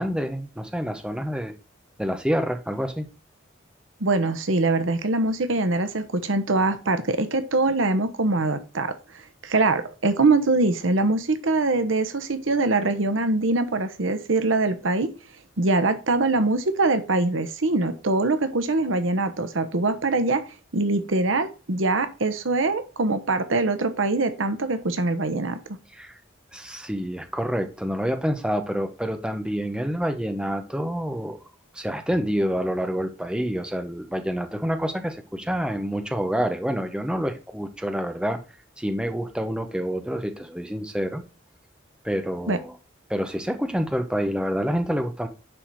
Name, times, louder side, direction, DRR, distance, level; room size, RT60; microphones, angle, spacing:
voice 1, 0.0-1.5 2.0-3.1 25.9-26.2 26.5-31.4 31.7-38.4 38.8-41.2 42.0-42.8 43.1-45.3, equal, 5° right, 6 dB, 1.0 m, -27 dB
voice 2, 4.0-15.1 15.6-20.4 20.7-25.6 42.5-42.6, right 2 dB, 90° right, 10 dB, 1.0 m, -23 dB
10.5 x 4.2 x 4.7 m, 0.32 s
head